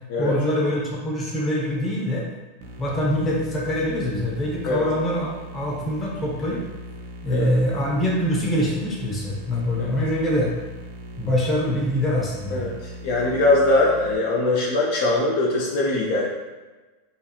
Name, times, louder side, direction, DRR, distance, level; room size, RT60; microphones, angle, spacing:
voice 1, 0.2-2.3 2.8-6.6 7.2-10.5 11.2-12.6, equal, 25° left, -4 dB, 0.8 m, -24 dB
sound 1, 2.6-14.2, equal, 70° right, 0.4 m, -40 dB
voice 2, 13.0-16.3, left 2 dB, 65° left, -3 dB, 0.5 m, -21 dB
2.9 x 2.3 x 2.4 m, 1.3 s
hypercardioid pair, 115°, 0 cm